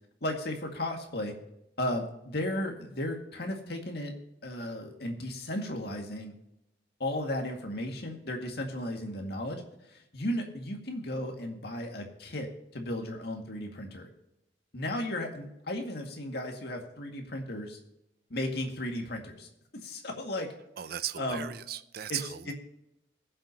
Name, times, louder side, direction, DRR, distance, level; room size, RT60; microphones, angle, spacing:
voice 1, 0.2-1.3 1.8-4.1 4.4-6.3 7.0-9.6 9.9-12.5 12.7-14.1 14.7-17.8 18.3-19.5 19.8-20.5 21.2-21.5 22.1-22.2, left 1 dB, 60° left, 2.1 m, -35 dB
voice 2, 20.8-22.5, right 10 dB, 55° right, 0.5 m, -37 dB
21.0 x 7.7 x 2.9 m
head